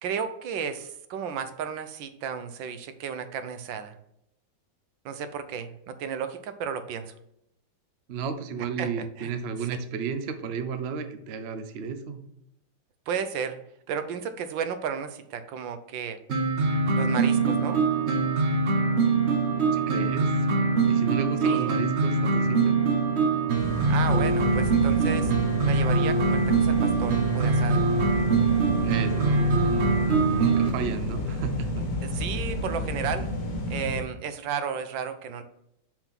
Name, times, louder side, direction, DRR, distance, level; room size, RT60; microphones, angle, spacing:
voice 1, 0.0-4.0 5.0-7.1 8.8-9.3 9.6-9.7 13.1-13.6 13.9-16.2 16.9-17.8 21.4-21.8 23.9-25.3 25.6-27.8 32.0-33.3 33.7-35.4, right 7 dB, 70° right, 10 dB, 1.4 m, -33 dB
voice 2, 8.1-12.2 19.7-20.3 20.8-22.8 28.8-31.9, right 6 dB, 90° right, 8 dB, 0.5 m, -33 dB
sound 1, 16.3-30.7, right 4 dB, 50° right, 0.8 m, -23 dB
sound 2, 23.5-34.0, left 1 dB, 60° left, 1.7 m, -31 dB
6.9 x 3.9 x 5.9 m, 0.77 s
omnidirectional pair, 2.2 m